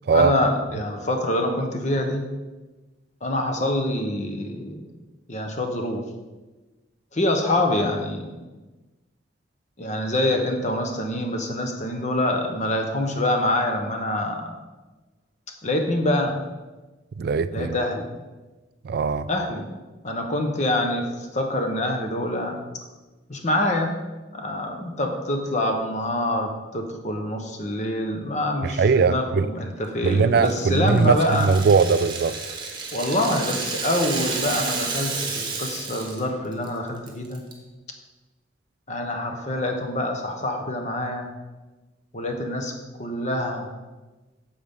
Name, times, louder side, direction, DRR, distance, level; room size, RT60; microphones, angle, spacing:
voice 1, 0.1-2.2 3.2-4.9 5.3-6.0 7.1-8.3 9.8-14.5 15.6-16.4 17.5-18.1 19.3-19.6 20.0-21.0 21.3-22.6 23.3-23.9 24.3-31.5 32.9-37.4 38.9-41.3 42.1-42.7 43.0-43.7, left 1 dB, 40° left, 1.0 m, -25 dB
voice 2, 17.2-17.8 18.8-19.3 28.6-29.5 30.0-32.4, right 5 dB, 55° right, 0.3 m, -20 dB
Rattle (instrument), 30.4-36.2 36.5-36.7 37.1-37.5, right 4 dB, 25° right, 1.2 m, -31 dB
9.4 x 7.1 x 3.7 m
head